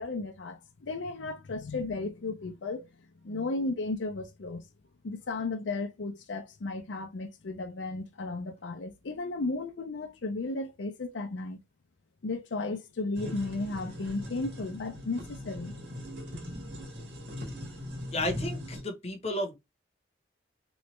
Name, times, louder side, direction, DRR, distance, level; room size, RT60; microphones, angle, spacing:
voice 1, 0.0-2.9 3.2-4.6 5.0-11.6 12.2-15.7, left 3 dB, 80° left, 0.5 m, -34 dB
sound 1, 13.1-18.8, left 1 dB, 70° right, 1.5 m, -40 dB
voice 2, 18.1-19.6, left 1 dB, 35° left, 0.8 m, -32 dB
3.2 x 3.1 x 3.0 m
head